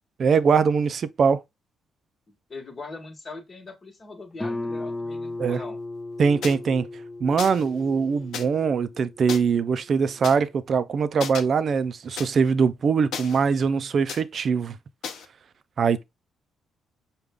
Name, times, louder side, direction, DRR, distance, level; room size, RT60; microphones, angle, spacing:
voice 1, 0.2-1.4 5.4-5.6 6.2-6.9 7.2-14.7 15.8-16.0, right 5 dB, 50° right, 0.4 m, -22 dB
voice 2, 2.5-5.8, left 3 dB, 35° left, 1.2 m, -40 dB
Guitar, 4.4-9.8, left 2 dB, 15° left, 0.5 m, -36 dB
sound 1, 6.4-6.6 7.4-7.7 8.3-8.4 9.3-9.4 10.2-10.3 11.2-11.4 12.2-12.3 13.1-13.7 14.1-14.2 15.0-15.3, left 7 dB, 75° left, 0.6 m, -34 dB
5.0 x 2.3 x 3.4 m
cardioid pair, 90°, 0 cm